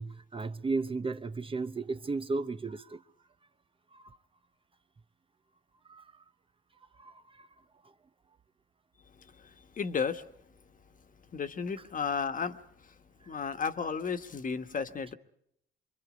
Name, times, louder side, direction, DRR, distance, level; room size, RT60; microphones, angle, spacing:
voice 1, 0.0-3.0 3.9-4.2 5.9-6.0 7.0-7.5, right 3 dB, 25° right, 0.8 m, -35 dB
voice 2, 9.2-10.2 11.3-12.9 13.3-15.1, left 6 dB, 40° left, 1.4 m, -34 dB
25.5 x 23.0 x 5.1 m
cardioid pair, 90°, 20 cm